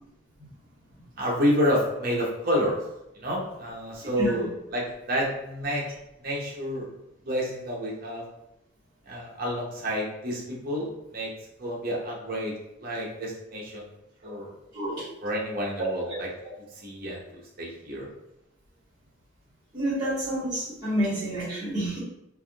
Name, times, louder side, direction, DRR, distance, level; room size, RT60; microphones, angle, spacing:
voice 1, 1.2-2.8 3.1-5.8 6.2-6.9 7.2-8.2 9.1-11.3 11.6-12.5 12.8-13.9 14.2-14.5 15.2-16.3 16.8-18.1, equal, 45° right, -3 dB, 0.8 m, -29 dB
voice 2, 14.7-15.0 19.7-22.0, right 1 dB, 20° right, -14 dB, 1.4 m, -28 dB
3.4 x 2.5 x 2.3 m, 0.85 s
head